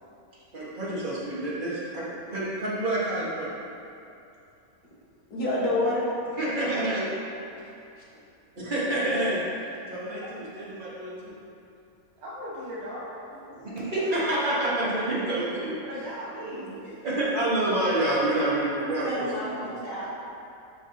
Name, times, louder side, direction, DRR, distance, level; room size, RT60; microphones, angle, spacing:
voice 1, 0.5-3.5 6.4-7.1 8.6-9.4 9.9-11.3 13.5-15.8 16.5-19.8, right 1 dB, 30° right, -8 dB, 1.3 m, -28 dB
voice 2, 5.3-6.1 19.0-20.1, left 1 dB, 70° left, -7 dB, 1.9 m, -28 dB
voice 3, 12.2-13.2 15.8-17.1, equal, 85° right, -9 dB, 1.9 m, -38 dB
6.5 x 5.7 x 2.7 m, 2.6 s
omnidirectional pair, 1.9 m